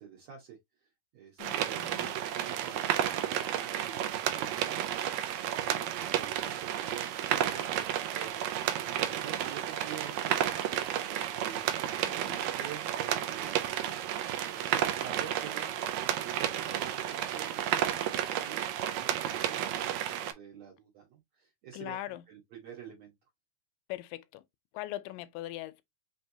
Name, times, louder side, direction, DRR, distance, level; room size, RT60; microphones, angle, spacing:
voice 1, 0.0-8.5 8.8-13.6 14.4-23.1, right 9 dB, 60° right, 2.1 m, -48 dB
voice 2, 1.4-2.2 12.0-12.5 21.7-22.2 23.9-24.4 24.7-25.8, left 15 dB, 80° left, 2.1 m, -41 dB
sound 1, 1.4-20.3, right 10 dB, 90° right, 1.6 m, -32 dB
5.2 x 3.3 x 2.7 m
omnidirectional pair, 4.0 m